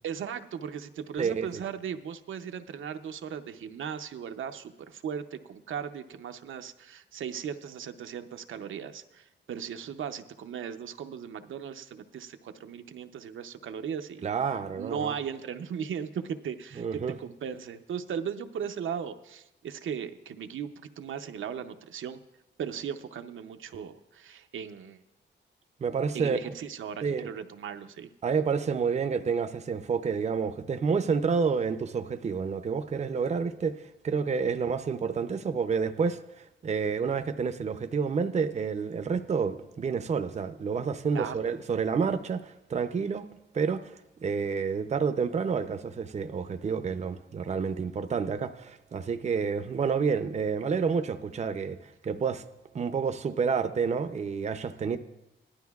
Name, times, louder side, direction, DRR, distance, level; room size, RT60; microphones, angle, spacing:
voice 1, 0.0-14.2 14.8-22.2 22.6-25.0 26.1-28.1 41.1-41.4, right 7 dB, 85° right, 0.6 m, -37 dB
voice 2, 1.2-1.5 14.2-15.1 16.8-17.2 25.8-26.4 27.0-27.3 28.2-43.3 43.5-43.9 44.2-52.4 52.7-55.0, right 5 dB, 35° right, 0.5 m, -29 dB
17.5 x 11.5 x 2.3 m
wide cardioid pair, 125°, 20 cm